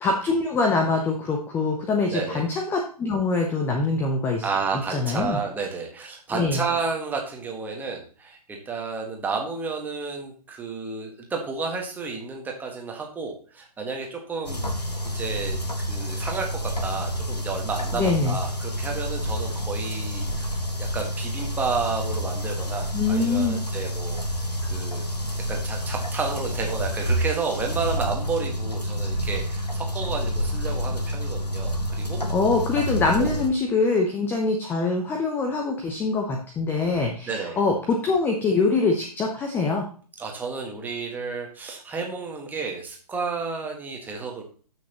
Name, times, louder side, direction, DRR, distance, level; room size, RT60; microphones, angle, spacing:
voice 1, 0.0-4.4 4.9-5.4 6.3-6.6 17.9-18.4 22.9-23.6 32.3-39.9, left 3 dB, 10° left, 2 dB, 0.8 m, -24 dB
voice 2, 2.1-2.5 4.4-14.7 15.1-20.5 20.8-24.2 24.7-25.1 25.4-32.2 33.2-33.3 37.2-37.6 40.2-44.4, right 4 dB, 10° right, 1 dB, 1.7 m, -31 dB
sound 1, 14.4-33.5, equal, 85° left, 1.6 m, -28 dB
13.0 x 6.2 x 3.0 m, 0.42 s
figure-of-eight pair, 125°, 20 cm